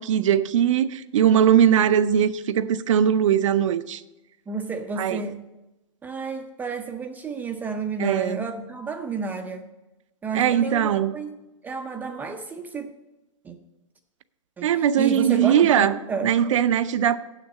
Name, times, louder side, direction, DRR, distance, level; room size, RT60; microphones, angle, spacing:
voice 1, 0.0-4.0 5.0-5.2 8.0-8.4 10.3-11.1 14.6-15.9 16.2-17.2, right 9 dB, 75° right, 0.6 m, -20 dB
voice 2, 4.5-5.4 6.0-9.7 10.2-11.3 11.6-12.9 13.4-13.6 14.6-16.3, right 5 dB, 10° right, 0.5 m, -31 dB
8.0 x 6.7 x 7.2 m
hypercardioid pair, 150°, 17 cm